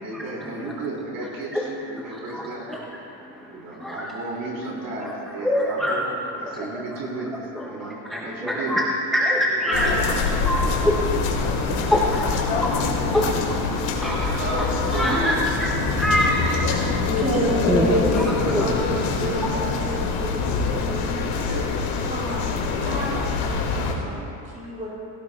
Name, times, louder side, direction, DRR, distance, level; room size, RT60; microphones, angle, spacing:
voice 1, 0.0-2.7 3.5-6.1 6.4-8.8 9.6-10.1 11.7-12.1 13.8-15.4 21.5-21.7, right 2 dB, 45° right, -3 dB, 3.7 m, -33 dB
voice 2, 2.1-2.8 3.8-4.1 5.0-5.1 5.4-6.0 6.5-6.7 7.6-8.8 9.1-9.9 10.4-16.6 17.0-17.2 17.7-17.8 18.2-18.9, equal, ahead, -3 dB, 0.5 m, -25 dB
sound 1, 9.7-23.9, left 4 dB, 70° left, 2.3 m, -25 dB
voice 3, 16.5-21.2 22.1-22.5 22.8-24.9, right 1 dB, 15° right, -5 dB, 3.5 m, -29 dB
18.5 x 17.5 x 2.3 m, 2.7 s
cardioid pair, 165°, 49 cm